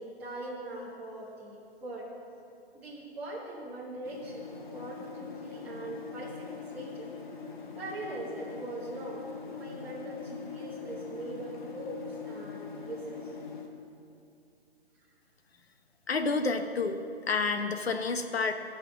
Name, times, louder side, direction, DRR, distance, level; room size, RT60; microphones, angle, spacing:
voice 1, 0.0-2.1 2.7-7.1 7.7-13.3, right 1 dB, 5° right, -7 dB, 0.9 m, -41 dB
sound 1, 4.0-13.7, left 6 dB, 50° left, 1.3 m, -43 dB
voice 2, 16.1-18.5, left 4 dB, 70° left, 7 dB, 1.0 m, -29 dB
13.0 x 5.6 x 7.2 m, 2.5 s
figure-of-eight pair, 140°, 32 cm